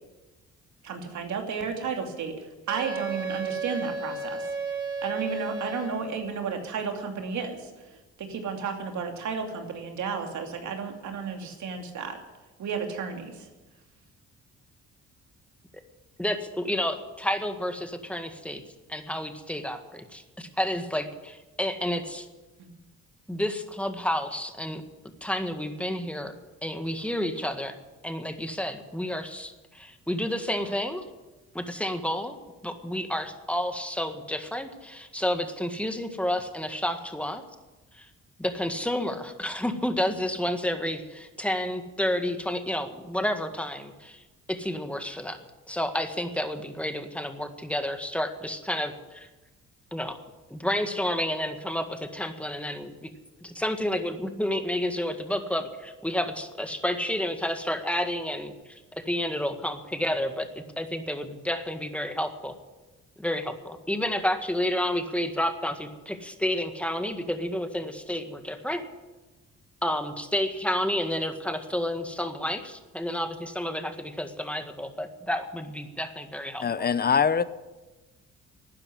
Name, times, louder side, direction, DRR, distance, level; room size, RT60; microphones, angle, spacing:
voice 1, 0.8-4.5 5.0-7.7 8.2-12.2 12.6-13.5 22.6-22.7, right 5 dB, 70° right, 2.7 m, -33 dB
Wind instrument woodwind instrument, 2.7-6.2, right 4 dB, 50° right, 4.0 m, -33 dB
voice 2, 16.2-18.6 18.9-22.3 23.3-24.8 25.2-26.3 26.6-27.8 28.0-31.0 31.5-32.4 32.6-37.4 37.9-38.1 38.4-44.2 44.5-45.4 45.7-49.3 49.9-50.2 50.5-53.1 53.4-62.5 63.2-68.8 69.8-76.9, left 1 dB, 5° left, 1.7 m, -30 dB
voice 3, 76.6-77.4, left 6 dB, 30° left, 0.8 m, -23 dB
12.5 x 9.8 x 9.8 m
cardioid pair, 90°, 30 cm